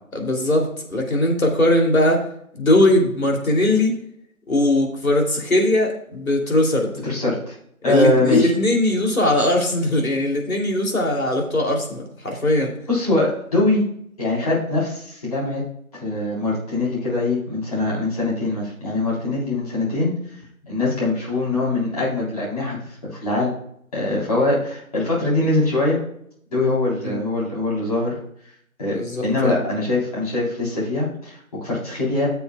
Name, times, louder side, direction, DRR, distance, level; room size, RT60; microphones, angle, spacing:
voice 1, 0.1-2.2 2.6-3.9 4.5-6.9 7.8-12.7 27.0-27.2 28.9-29.6, left 1 dB, 70° left, 0 dB, 3.0 m, -20 dB
voice 2, 7.0-7.6 7.8-8.5 12.9-13.8 14.2-15.6 16.0-20.1 20.7-22.8 23.0-23.5 23.9-26.0 26.5-28.1 28.8-32.3, left 2 dB, 25° left, -6 dB, 3.9 m, -22 dB
14.5 x 7.0 x 2.3 m, 0.69 s
figure-of-eight pair, 160°, 43 cm